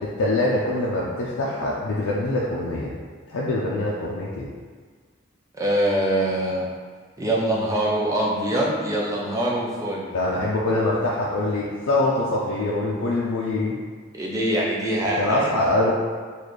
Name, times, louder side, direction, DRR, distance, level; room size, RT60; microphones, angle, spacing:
voice 1, 0.0-2.9 3.3-4.5 10.1-13.7 15.2-15.9, left 2 dB, 80° left, -5 dB, 0.5 m, -24 dB
voice 2, 5.5-6.7 7.2-10.1 14.2-15.5, right 1 dB, 15° right, -4 dB, 0.5 m, -23 dB
4.0 x 2.3 x 3.2 m, 1.5 s
head